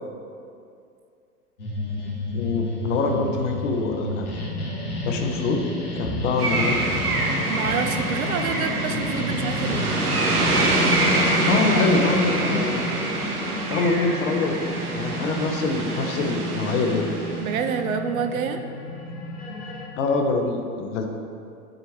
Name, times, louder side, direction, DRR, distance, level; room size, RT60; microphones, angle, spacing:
sound 1, 1.6-19.8, left 1 dB, 75° left, 1.6 m, -30 dB
voice 1, 2.3-4.4 5.0-5.6 6.0-7.0 11.5-12.8 13.7-17.1 20.0-21.1, left 3 dB, 55° left, 3 dB, 0.9 m, -25 dB
sound 2, 6.4-17.7, right 2 dB, 80° right, 1.1 m, -26 dB
voice 2, 7.5-9.9 17.4-18.6, right 6 dB, 65° right, 7 dB, 0.7 m, -27 dB
10.0 x 4.4 x 3.1 m, 2.4 s
figure-of-eight pair, 95°, 45 cm